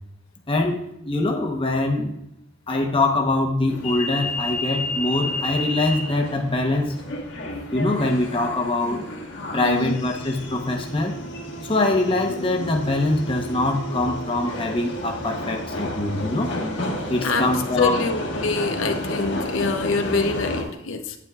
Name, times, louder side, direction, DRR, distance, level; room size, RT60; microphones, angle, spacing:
voice 1, 0.5-2.1 2.7-6.9 7.7-9.0 9.5-11.1 11.7-16.5 17.1-18.0, left 2 dB, 30° left, 2 dB, 0.9 m, -23 dB
sound 1, 3.7-20.6, left 1 dB, 65° left, 1.4 m, -31 dB
voice 2, 9.6-10.0 17.2-17.5 17.8-21.2, left 3 dB, 85° left, 5 dB, 0.7 m, -25 dB
9.4 x 8.7 x 2.4 m, 0.81 s
head